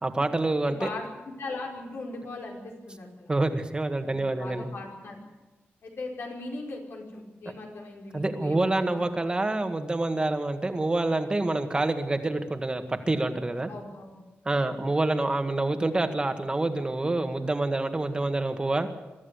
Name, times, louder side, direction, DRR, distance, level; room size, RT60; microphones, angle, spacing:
voice 1, 0.0-0.9 3.3-4.7 8.1-13.7 14.4-19.0, right 2 dB, 20° right, 7 dB, 1.7 m, -27 dB
voice 2, 0.6-3.3 4.1-5.2 5.8-9.1 13.7-14.2 14.6-14.7, left 2 dB, 80° left, 0 dB, 5.0 m, -39 dB
23.5 x 13.5 x 8.3 m, 1.1 s
wide cardioid pair, 135°, 4 cm